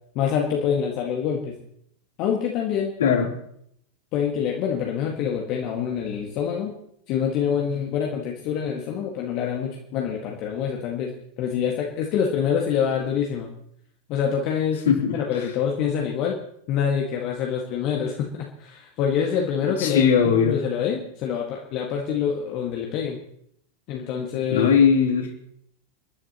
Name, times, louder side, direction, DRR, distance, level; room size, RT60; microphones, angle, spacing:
voice 1, 0.2-1.6 2.2-2.9 4.1-6.7 7.1-11.1 11.4-13.5 14.1-14.8 15.1-16.4 16.7-23.2 23.9-24.7, left 7 dB, 40° left, 0 dB, 1.8 m, -26 dB
voice 2, 14.8-15.2 19.8-20.6 24.5-25.3, left 7 dB, 60° left, 0 dB, 3.2 m, -19 dB
30.0 x 11.0 x 3.0 m, 0.71 s
figure-of-eight pair, 90°, 0 cm